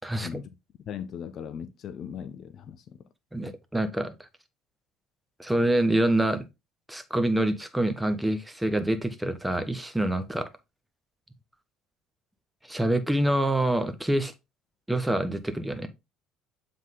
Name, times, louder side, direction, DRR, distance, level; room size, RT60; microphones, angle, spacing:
voice 1, 0.1-0.5 0.9-3.0, left 8 dB, 45° left, 0.5 m, -38 dB
voice 2, 3.3-4.1 5.4-6.4 6.9-10.5 12.7-14.3 14.9-15.9, right 1 dB, 5° right, 1.0 m, -26 dB
7.2 x 3.8 x 3.7 m
figure-of-eight pair, 60°, 0 cm